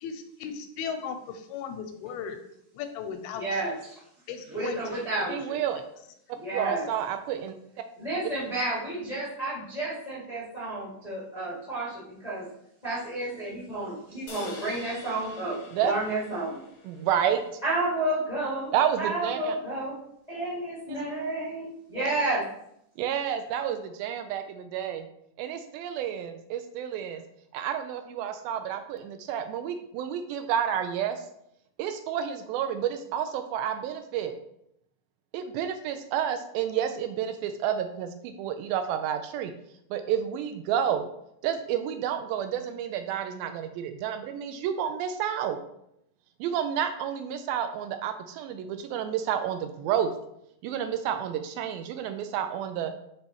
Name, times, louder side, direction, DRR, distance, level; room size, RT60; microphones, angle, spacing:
voice 1, 0.0-2.4 2.7-3.6 4.3-4.9, left 7 dB, 85° left, 7 dB, 2.4 m, -36 dB
voice 2, 3.4-3.7 4.5-5.6 6.4-6.9 8.0-12.4 12.8-16.6 17.6-19.9 20.3-22.4, right 2 dB, 30° left, -9 dB, 0.6 m, -31 dB
voice 3, 5.3-5.8 6.5-7.5 15.7-15.9 16.8-17.4 18.7-19.6 20.9-21.0 21.9-22.2 23.0-25.1 25.4-27.2 27.5-31.2 31.8-34.3 35.3-39.5 39.9-41.1 41.4-45.6 46.4-50.1 50.6-52.9, right 9 dB, 85° right, 8 dB, 2.2 m, -30 dB
sound 1, 14.3-17.7, left 2 dB, 55° left, 1.4 m, -46 dB
6.1 x 5.3 x 3.0 m, 0.75 s
omnidirectional pair, 4.6 m